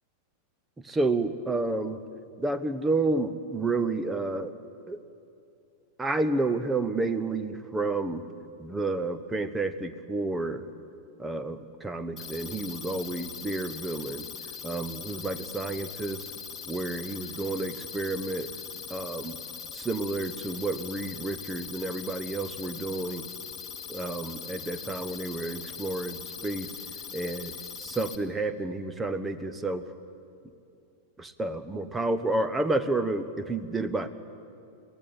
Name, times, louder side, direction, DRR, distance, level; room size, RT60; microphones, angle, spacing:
voice 1, 0.8-2.0 2.4-4.5 4.9-5.0 6.0-8.2 8.6-10.7 11.2-14.3 14.6-16.3 16.7-18.5 18.9-19.4 19.7-23.2 23.9-26.7 27.1-27.5 27.8-29.8 31.2-34.1, right 2 dB, 10° right, 11 dB, 1.1 m, -30 dB
sound 1, 12.2-28.2, left 7 dB, 25° left, 1.7 m, -41 dB
23.0 x 16.5 x 8.6 m, 2.5 s
figure-of-eight pair, 90°, 0 cm